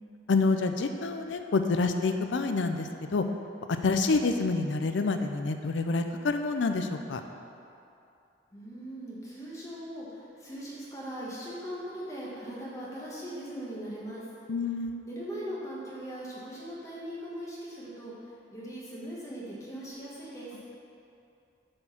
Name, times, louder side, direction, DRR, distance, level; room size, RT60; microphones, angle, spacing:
voice 1, 0.3-3.2 3.8-7.2 14.5-15.1, left 3 dB, 90° left, 7 dB, 0.5 m, -27 dB
voice 2, 8.5-14.3 15.0-18.1 18.5-20.6, right 1 dB, 15° left, -7 dB, 1.3 m, -40 dB
7.6 x 4.5 x 5.8 m, 2.6 s
head